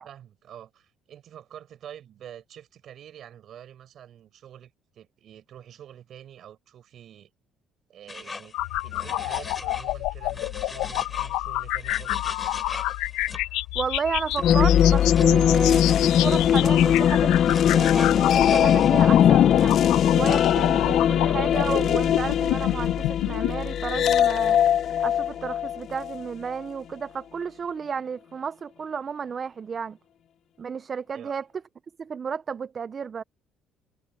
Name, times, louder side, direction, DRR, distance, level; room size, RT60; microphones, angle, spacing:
voice 1, 0.0-7.3 7.9-12.4 31.1-31.3, right 10 dB, 60° right, 5.9 m, -47 dB
sound 1, 8.1-10.0 10.2-13.4 14.3-15.4 15.9-19.1, left 4 dB, 25° left, 4.1 m, -41 dB
sound 2, 8.5-23.5, left 17 dB, 90° left, 1.0 m, -29 dB
voice 2, 13.7-19.8 20.1-24.6 25.0-30.0 30.6-31.5 32.0-33.2, right 6 dB, 40° right, 0.5 m, -32 dB
sound 3, 14.4-26.2, left 9 dB, 60° left, 0.5 m, -20 dB
cardioid pair, 100°, 0 cm